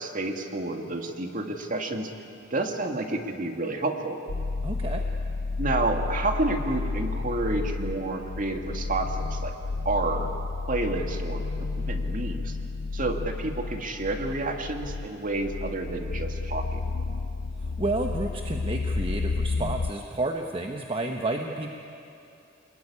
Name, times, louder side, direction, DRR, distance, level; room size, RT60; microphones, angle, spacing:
voice 1, 0.0-2.1 2.5-4.2 5.6-9.5 9.9-12.6 12.9-16.8, right 2 dB, 45° right, 4 dB, 2.1 m, -30 dB
sound 1, 4.3-19.9, left 3 dB, 70° left, 0.6 m, -31 dB
voice 2, 4.6-5.1 17.6-21.7, right 2 dB, 30° right, 3 dB, 1.1 m, -30 dB
26.5 x 21.0 x 9.9 m, 2.6 s
head